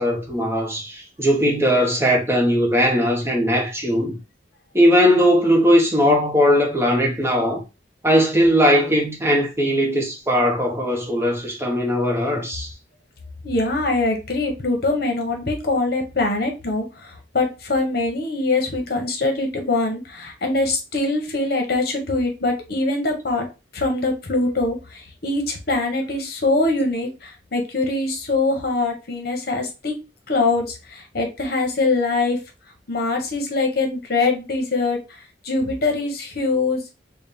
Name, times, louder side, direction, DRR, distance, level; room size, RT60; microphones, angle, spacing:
voice 1, 0.0-4.2 4.7-7.6 8.0-12.7, equal, 15° right, 0.8 m, -19 dB
voice 2, 13.4-16.8 17.3-23.4 23.7-24.8 25.2-29.9 30.3-32.4 32.9-35.0 35.4-36.8, left 3 dB, 60° left, 1.0 m, -23 dB
4.1 x 2.2 x 3.5 m
head